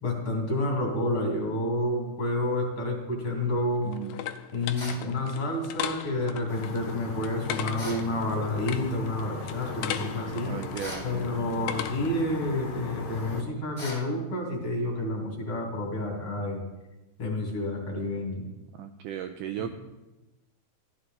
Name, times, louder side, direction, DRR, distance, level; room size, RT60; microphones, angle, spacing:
voice 1, 0.0-3.9 4.5-10.5 11.0-16.6 17.2-18.5 19.6-19.7, left 1 dB, 40° left, 0 dB, 2.7 m, -29 dB
sound 1, 3.2-12.2, left 10 dB, 80° left, 1.8 m, -38 dB
voice 2, 3.8-4.2 10.4-11.3 18.7-19.7, right 10 dB, 80° right, 6 dB, 1.9 m, -36 dB
sound 2, 4.7-5.1 7.8-8.1 10.8-11.1 13.8-14.1, left 1 dB, 15° left, 1.5 m, -39 dB
sound 3, 6.5-13.4, left 5 dB, 60° left, 2.1 m, -38 dB
13.5 x 11.0 x 3.8 m, 1.1 s
omnidirectional pair, 4.1 m